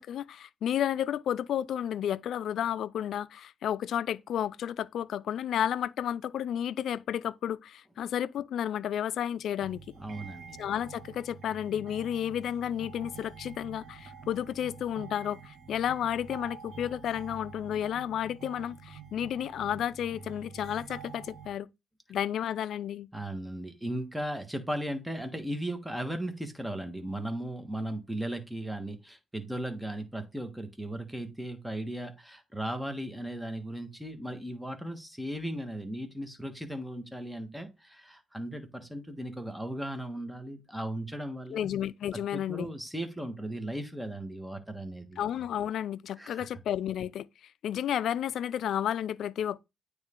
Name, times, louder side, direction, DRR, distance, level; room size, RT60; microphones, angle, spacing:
voice 1, 0.0-9.8 10.6-21.7 22.1-23.1 41.5-42.7 45.2-47.3 47.6-49.6, left 10 dB, 70° left, 0.3 m, -32 dB
sound 1, 9.6-21.6, right 6 dB, 75° right, 1.6 m, -47 dB
voice 2, 10.0-10.6 23.1-41.7 42.3-45.2 46.2-46.5, right 1 dB, 5° right, 1.3 m, -37 dB
9.1 x 3.2 x 3.7 m
cardioid pair, 90°, 0 cm